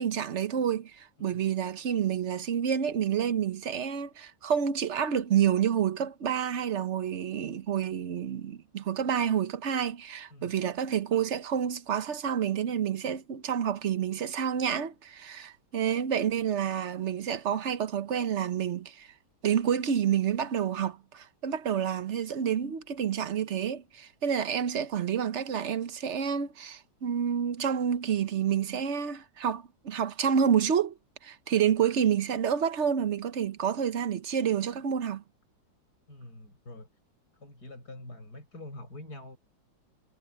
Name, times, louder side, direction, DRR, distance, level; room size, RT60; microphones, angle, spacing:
voice 1, 0.0-19.1 19.4-30.9 31.2-35.2, right 8 dB, 45° right, 1.0 m, -29 dB
voice 2, 1.2-1.5 10.3-10.6 36.1-36.9 37.3-39.4, left 1 dB, 55° left, 8.5 m, -45 dB
omnidirectional pair, 2.0 m